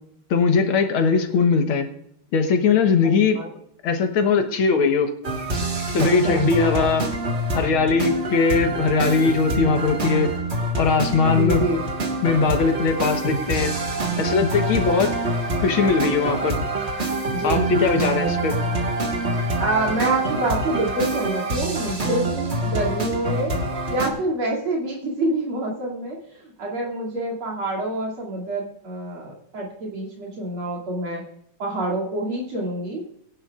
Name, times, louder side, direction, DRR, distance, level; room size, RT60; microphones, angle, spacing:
voice 1, 0.3-1.9 2.3-3.4 3.8-5.1 5.9-7.1 7.5-10.3 10.8-11.7 12.2-13.7 14.2-15.2 15.6-16.6 17.4-18.5, left 5 dB, 75° left, 5 dB, 2.1 m, -20 dB
sound 1, 5.2-24.1, right 2 dB, 35° right, 1.7 m, -26 dB
voice 2, 5.9-6.4 11.3-11.8 17.3-18.3 19.6-23.5 23.9-31.2 31.6-33.0, right 2 dB, 80° right, -4 dB, 3.6 m, -26 dB
21.5 x 11.0 x 2.5 m, 0.75 s
omnidirectional pair, 2.3 m